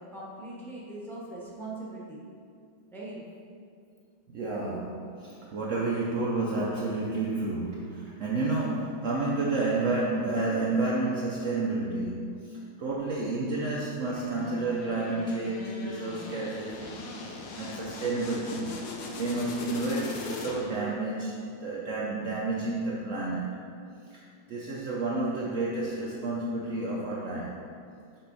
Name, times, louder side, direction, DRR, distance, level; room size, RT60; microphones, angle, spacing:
voice 1, 0.0-2.2 2.9-3.2, right 2 dB, ahead, -5 dB, 0.6 m, -40 dB
voice 2, 4.3-17.1 17.6-18.8 19.2-21.4 21.6-23.7 24.1-24.2 24.5-27.7, right 2 dB, 85° right, -4 dB, 0.6 m, -30 dB
sound 1, 14.1-20.9, left 2 dB, 75° left, 1.4 m, -40 dB
6.5 x 4.6 x 3.9 m, 2.3 s
omnidirectional pair, 2.1 m